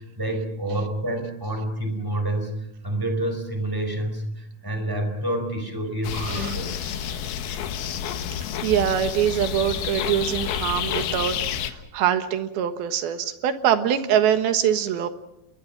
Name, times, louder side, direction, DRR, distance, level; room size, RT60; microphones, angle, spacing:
voice 1, 0.0-6.7, right 1 dB, 5° right, 5 dB, 4.7 m, -28 dB
sound 1, 6.0-11.7, left 9 dB, 90° left, 3.3 m, -29 dB
voice 2, 6.1-6.6 7.1-7.2 8.6-11.4 11.6-15.1, right 10 dB, 90° right, 9 dB, 3.3 m, -23 dB
29.5 x 21.5 x 6.0 m, 0.85 s
omnidirectional pair, 4.2 m